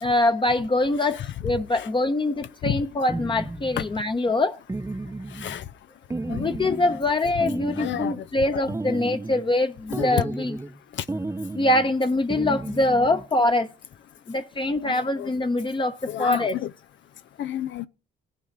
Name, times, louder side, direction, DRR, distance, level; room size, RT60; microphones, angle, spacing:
voice 1, 0.0-4.6 6.3-10.6 11.5-13.7 14.3-16.6, left 2 dB, 25° left, 1.0 m, -24 dB
voice 2, 1.0-1.9 2.6-2.8 3.8-3.9 5.3-5.6 6.3-6.8 7.7-8.3 8.5-8.6 9.9-10.1 10.9-11.0 14.8-15.3 16.1-16.7 17.4-17.9, left 11 dB, 70° left, 0.6 m, -31 dB
sound 1, 3.1-4.0 4.7-5.6 6.1-7.1 7.4-8.2 8.7-9.5 9.9-10.8 11.1-11.9 12.3-13.3, right 2 dB, 15° right, 0.8 m, -33 dB
18.5 x 6.3 x 4.0 m
cardioid pair, 90°, 20 cm